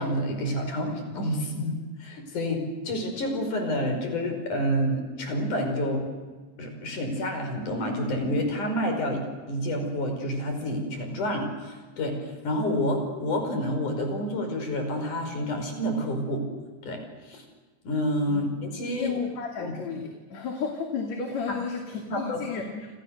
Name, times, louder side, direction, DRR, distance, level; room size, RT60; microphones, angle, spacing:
voice 1, 0.0-6.1 6.6-16.5 16.8-17.4 17.8-19.1 19.6-19.7 22.1-22.4, equal, 90° left, 5 dB, 6.7 m, -29 dB
voice 2, 19.0-22.9, left 5 dB, 65° left, 2 dB, 3.7 m, -33 dB
30.0 x 28.0 x 6.6 m, 1.3 s
omnidirectional pair, 3.5 m